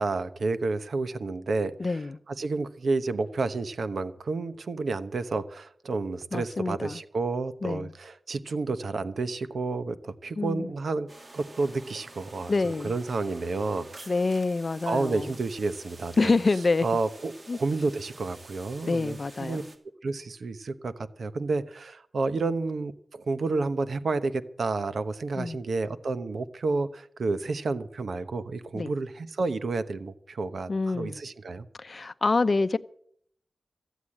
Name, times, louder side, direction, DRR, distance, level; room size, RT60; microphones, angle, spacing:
voice 1, 0.0-2.0 2.3-12.5 12.8-14.1 14.9-16.4 16.8-19.6 20.0-31.7, right 3 dB, 75° right, 1.0 m, -30 dB
voice 2, 1.8-2.2 6.3-7.0 7.6-7.9 10.4-10.7 12.5-12.9 14.1-15.4 16.2-16.9 17.5-17.6 18.9-19.6 25.4-25.6 28.7-28.9 30.7-31.2 31.8-32.8, left 3 dB, 45° left, 0.6 m, -26 dB
sound 1, 11.1-19.8, right 2 dB, 45° right, 2.3 m, -49 dB
14.5 x 8.2 x 8.6 m
wide cardioid pair, 90°, 0 cm